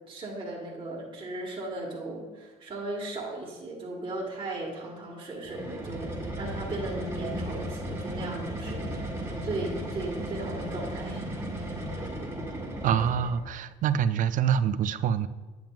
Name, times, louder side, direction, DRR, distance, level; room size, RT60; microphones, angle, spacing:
voice 1, 0.1-6.1 6.4-9.1 9.4-11.2 11.5-11.7, right 2 dB, 30° right, -4 dB, 1.5 m, -36 dB
sound 1, 5.4-13.5, equal, 15° right, 1.3 m, -35 dB
voice 2, 12.8-15.3, right 8 dB, 50° right, 14 dB, 0.4 m, -25 dB
9.1 x 7.3 x 2.3 m, 1.3 s
cardioid pair, 110°, 17 cm